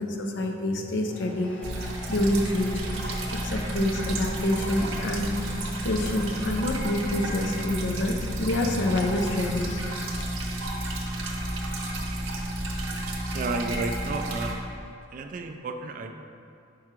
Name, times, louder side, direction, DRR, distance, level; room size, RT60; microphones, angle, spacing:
voice 1, 0.0-1.6 2.1-2.8 3.3-5.3 5.8-10.3, left 1 dB, 60° left, 3 dB, 0.5 m, -27 dB
Applause, 1.0-8.0, equal, 5° left, 0.6 m, -46 dB
sound 1, 1.6-14.5, right 1 dB, 90° right, 0.8 m, -31 dB
voice 2, 13.3-14.6 15.1-16.1, right 3 dB, 40° right, 5 dB, 0.3 m, -32 dB
4.8 x 4.5 x 4.5 m, 2.6 s
head